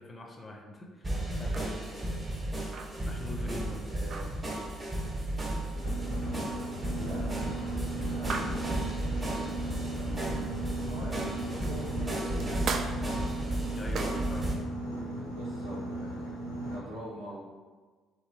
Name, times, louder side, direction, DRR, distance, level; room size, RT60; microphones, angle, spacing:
voice 1, 0.0-1.8 3.1-3.9 13.7-14.5, left 2 dB, 30° left, 1 dB, 0.5 m, -43 dB
sound 1, 1.0-14.5, right 1 dB, 20° right, 0.8 m, -34 dB
sound 2, 1.3-10.7 11.1-14.4, right 4 dB, 50° right, 0.3 m, -41 dB
voice 2, 3.9-4.8 6.7-12.7 15.2-16.4 16.7-17.4, equal, 85° right, -15 dB, 0.8 m, -45 dB
Boat Water vehicle, 5.7-16.7, right 2 dB, 85° left, 0.5 m, -36 dB
2.8 x 2.6 x 2.9 m, 1.4 s
figure-of-eight pair, 45°, 0 cm